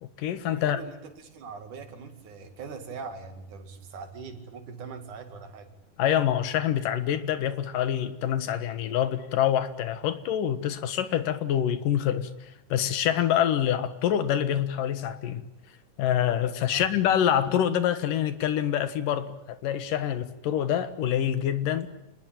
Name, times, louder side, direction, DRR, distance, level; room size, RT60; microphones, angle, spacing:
voice 1, 0.0-0.8 6.0-15.5 16.0-21.9, left 10 dB, 90° left, 3.2 m, -26 dB
voice 2, 0.5-5.7 16.7-17.0, right 5 dB, 70° right, 3.6 m, -42 dB
27.5 x 21.0 x 8.9 m
omnidirectional pair, 3.7 m